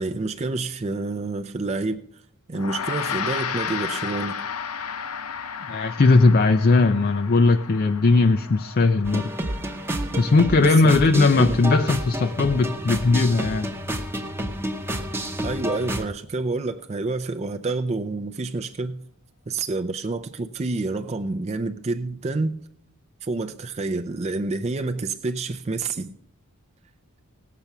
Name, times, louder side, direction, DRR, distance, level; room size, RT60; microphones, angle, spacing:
voice 1, 0.0-2.0 2.5-4.4 10.5-11.6 15.4-19.0 19.5-22.6 23.2-26.1, right 3 dB, 30° right, 0.4 m, -28 dB
Gong, 2.5-12.1, left 7 dB, 80° left, 0.8 m, -34 dB
voice 2, 5.7-9.3 10.2-13.7, left 3 dB, 40° left, 0.4 m, -18 dB
sound 1, 9.0-16.0, right 1 dB, 10° right, 0.9 m, -29 dB
18.0 x 6.8 x 5.9 m
head